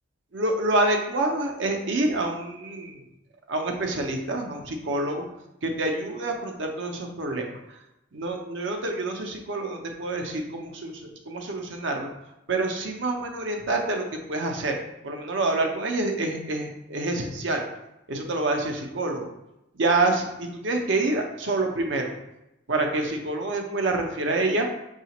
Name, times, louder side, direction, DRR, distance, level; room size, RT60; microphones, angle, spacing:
voice 1, 0.3-3.0 3.5-5.3 5.6-7.5 8.1-10.9 11.3-12.1 12.5-14.7 15.0-17.6 18.1-19.3 19.8-22.1 22.7-24.7, right 2 dB, 65° right, 3 dB, 0.6 m, -27 dB
5.6 x 2.4 x 2.9 m, 0.90 s
head